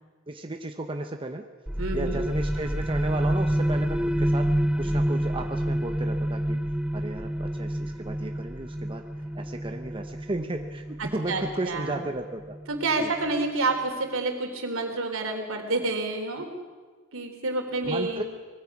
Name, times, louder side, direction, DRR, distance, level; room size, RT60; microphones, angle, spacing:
voice 1, 0.3-1.5 1.9-6.6 6.9-9.0 9.3-12.6 13.0-13.1 17.8-18.2, right 2 dB, 25° right, 4 dB, 0.9 m, -34 dB
sound 1, 1.7-13.0, equal, 5° right, 0.5 m, -28 dB
voice 2, 1.8-2.2 11.0-12.0 12.7-16.5 17.1-18.2, right 2 dB, 65° right, 4 dB, 3.4 m, -29 dB
23.5 x 20.5 x 6.0 m, 1.5 s
head